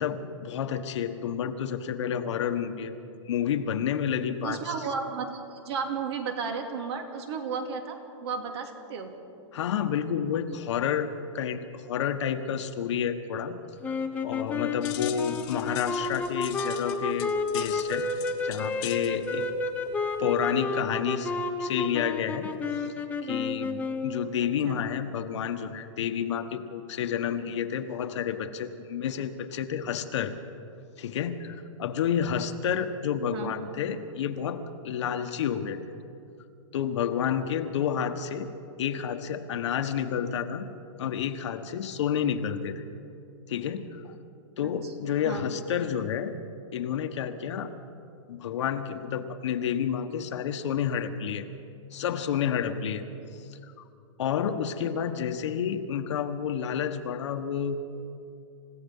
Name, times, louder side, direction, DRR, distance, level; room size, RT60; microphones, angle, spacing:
voice 1, 0.0-2.9 3.3-4.7 9.5-13.6 13.9-14.0 14.2-18.0 18.4-19.5 20.2-21.3 21.6-22.5 22.8-22.9 23.2-30.3 31.0-35.8 36.7-38.5 38.8-40.7 41.0-42.8 43.5-44.2 44.6-46.3 46.7-47.7 48.3-51.4 51.9-53.0 54.2-57.8, left 8 dB, 65° left, 7 dB, 1.5 m, -30 dB
voice 2, 4.4-9.1 24.4-24.8 33.3-33.5 44.6-44.9 45.2-45.5, right 5 dB, 55° right, 4 dB, 2.8 m, -34 dB
sound 1, 13.8-24.3, left 3 dB, 10° left, 0.9 m, -31 dB
sound 2, 14.8-20.6, left 14 dB, 35° left, 1.5 m, -43 dB
28.5 x 16.5 x 5.6 m, 2.5 s
hypercardioid pair, 160°, 16 cm